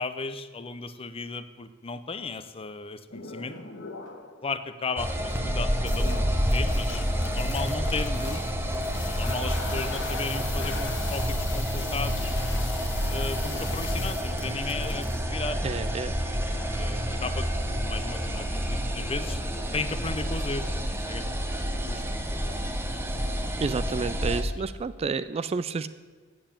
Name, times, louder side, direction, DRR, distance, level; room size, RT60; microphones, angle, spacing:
voice 1, 0.0-3.6 4.4-6.3 6.5-8.4 9.1-12.4 13.1-15.6 16.5-19.4 19.7-21.3 21.8-22.0 22.3-22.7, left 4 dB, 30° left, 12 dB, 0.6 m, -35 dB
sound 1, 3.1-4.4 4.9-15.2, left 5 dB, 65° left, 1.3 m, -40 dB
sound 2, 5.0-24.4, equal, 10° right, 0.9 m, -29 dB
voice 2, 15.6-16.1 23.6-25.9, right 4 dB, 30° right, 14 dB, 0.3 m, -30 dB
8.9 x 7.7 x 8.6 m, 1.4 s
head